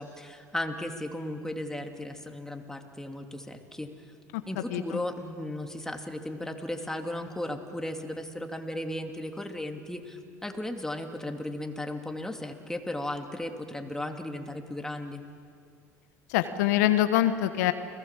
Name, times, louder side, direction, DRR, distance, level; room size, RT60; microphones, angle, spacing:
voice 1, 0.0-3.9 4.5-15.2, left 1 dB, 5° left, 4 dB, 2.6 m, -35 dB
voice 2, 4.7-5.0 16.3-17.7, left 13 dB, 75° left, 10 dB, 1.2 m, -24 dB
29.5 x 19.5 x 7.5 m, 2.2 s
hypercardioid pair, 75°, 9 cm